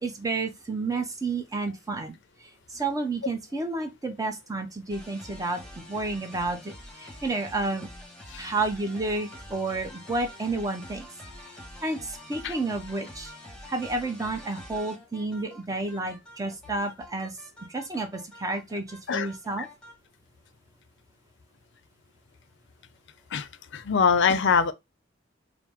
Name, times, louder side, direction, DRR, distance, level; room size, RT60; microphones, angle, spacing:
voice 1, 0.0-2.2 2.7-7.9 8.4-11.1 11.8-13.3 13.7-17.4 17.7-19.7, right 3 dB, 15° right, 0.7 m, -31 dB
sound 1, 4.9-20.0, left 1 dB, 5° left, 1.2 m, -46 dB
voice 2, 23.7-24.7, left 6 dB, 65° left, 0.5 m, -23 dB
4.6 x 2.0 x 3.6 m
head